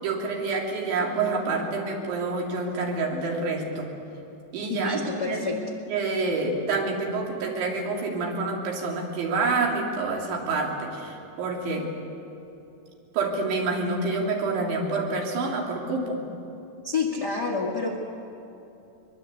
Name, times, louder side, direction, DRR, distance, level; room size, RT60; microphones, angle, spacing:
voice 1, 0.0-3.9 4.5-5.5 5.9-11.9 13.1-16.2, right 3 dB, 80° right, -1 dB, 5.5 m, -27 dB
voice 2, 4.7-5.6 16.8-18.0, left 4 dB, 65° left, 0 dB, 1.0 m, -28 dB
23.0 x 22.5 x 8.3 m, 2.9 s
omnidirectional pair, 5.2 m